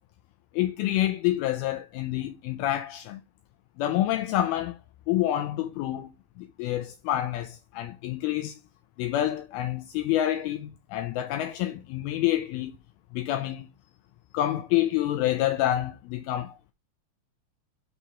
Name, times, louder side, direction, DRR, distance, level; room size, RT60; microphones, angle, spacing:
voice 1, 0.5-3.2 3.8-4.8 5.1-6.1 6.4-8.6 9.0-12.7 13.1-13.7 14.3-16.6, left 13 dB, 85° left, 2.3 m, -28 dB
7.1 x 4.0 x 6.1 m
omnidirectional pair, 4.8 m